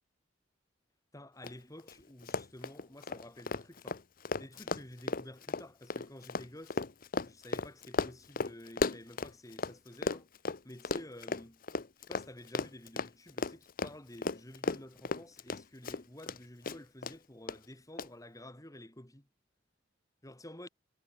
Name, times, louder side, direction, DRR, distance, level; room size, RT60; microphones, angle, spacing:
voice 1, 1.1-4.0 4.4-6.8 7.2-10.3 10.6-11.6 12.1-19.3 20.2-20.7, left 1 dB, 20° left, 3.1 m, -51 dB
Run, 1.4-1.5 1.8-1.9 2.2-9.7 10.0-16.4 16.6-17.1 17.5-17.6 18.0-18.1, left 3 dB, 50° left, 0.8 m, -35 dB
head